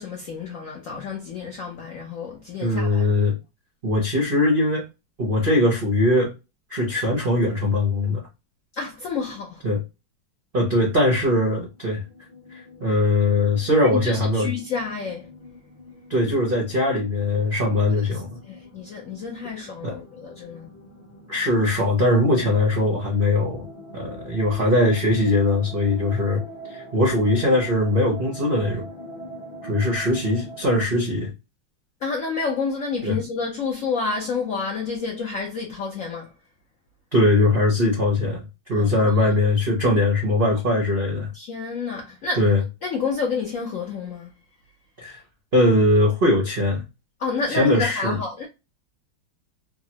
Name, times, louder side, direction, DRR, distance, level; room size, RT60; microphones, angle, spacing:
voice 1, 0.0-3.2 8.7-9.6 13.9-15.3 18.4-20.7 32.0-36.3 38.8-39.1 41.3-42.4 42.8-44.3 47.2-48.5, left 4 dB, 85° left, 0.7 m, -29 dB
voice 2, 2.6-3.4 3.8-4.8 5.2-6.3 6.7-8.2 9.6-9.8 10.5-12.0 12.5-14.5 16.1-18.4 19.8-20.0 21.3-23.6 23.9-26.4 26.7-28.9 29.6-31.3 33.0-33.2 37.1-38.4 38.7-41.3 42.4-42.6 45.0-45.2 45.5-46.8 47.5-48.2, left 1 dB, 65° right, 0.5 m, -21 dB
sound 1, 11.7-30.8, equal, 35° left, 0.5 m, -43 dB
3.7 x 2.1 x 2.8 m
omnidirectional pair, 2.3 m